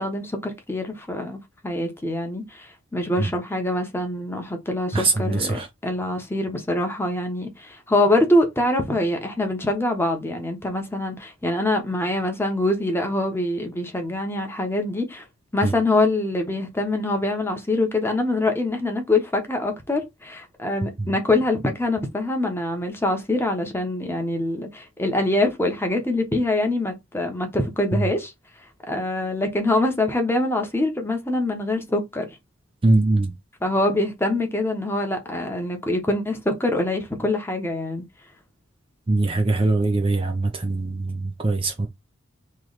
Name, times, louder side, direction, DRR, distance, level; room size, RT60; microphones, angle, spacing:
voice 1, 0.0-15.2 15.5-28.3 28.9-32.3 33.6-38.0, left 2 dB, 10° left, 1.0 m, -24 dB
voice 2, 4.9-5.7 15.6-15.7 21.0-21.1 28.0-28.1 32.8-33.3 39.1-41.9, right 2 dB, 25° right, 0.5 m, -22 dB
3.2 x 3.1 x 3.9 m
head